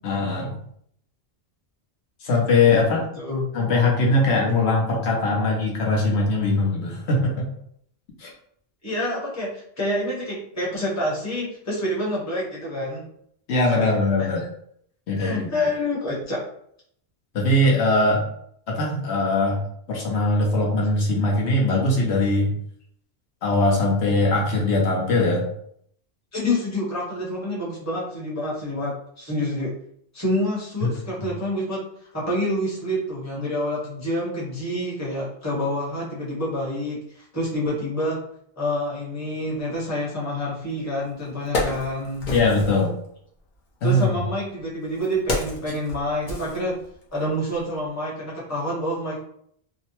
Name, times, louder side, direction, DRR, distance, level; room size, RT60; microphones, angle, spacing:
voice 1, 0.0-0.6 2.2-3.0 3.5-7.5 8.2-8.3 13.5-14.4 15.1-15.5 17.3-18.2 18.7-19.6 19.9-22.5 23.4-25.4 30.8-30.9 42.3-42.9 43.8-44.1, left 2 dB, 80° left, -1 dB, 0.9 m, -21 dB
voice 2, 3.2-3.5 8.8-13.0 13.7-14.3 15.2-16.4 26.3-29.7 30.1-31.8 32.1-38.2 38.6-42.2 43.8-46.8 47.1-49.2, left 1 dB, 15° left, -6 dB, 0.8 m, -27 dB
Wood, 40.7-40.8 41.2-42.9 43.8-47.2 47.5-47.6, left 2 dB, 50° left, 0.7 m, -30 dB
2.6 x 2.0 x 2.9 m, 0.68 s
omnidirectional pair, 1.1 m